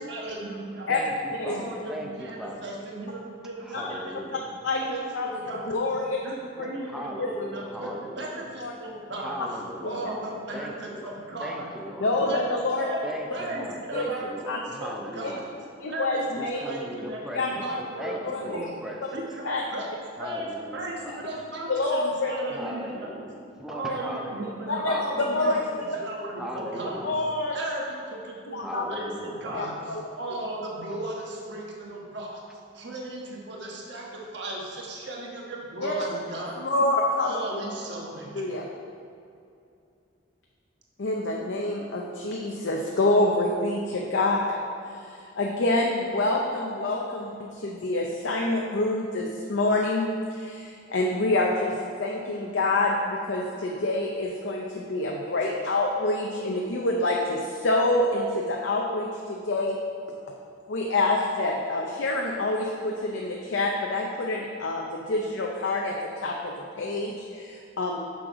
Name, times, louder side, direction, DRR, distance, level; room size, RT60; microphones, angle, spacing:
voice 1, 0.0-0.9 1.4-4.5 4.9-5.7 6.2-9.4 9.8-11.7 12.2-12.4 12.7-15.4 15.9-18.7 19.1-19.9 20.2-20.5 20.7-23.1 23.7-27.0 27.5-32.4 32.7-36.6 37.2-38.5, right 1 dB, 60° right, -2 dB, 1.3 m, -36 dB
voice 2, 0.9-2.7 3.6-4.5 6.8-8.5 9.2-12.1 13.0-15.5 16.3-19.2 20.2-21.4 22.5-25.6 26.4-27.2 28.6-29.9, equal, 5° right, 1 dB, 0.6 m, -39 dB
voice 3, 5.7-6.2 6.6-6.7 7.2-7.3 8.6-8.7 9.8-10.1 12.0-12.8 13.9-14.1 14.5-14.6 15.2-15.3 15.8-16.6 17.3-17.5 18.2-18.6 19.4-19.6 21.7-22.3 24.7-25.0 25.3-25.6 27.0-27.6 28.5-28.8 29.5-30.0 35.8-35.9 36.6-37.4 38.3-38.7 41.0-44.6 45.4-59.8 60.7-68.0, left 2 dB, 65° left, -1 dB, 0.6 m, -27 dB
6.6 x 6.1 x 4.8 m, 2.5 s
head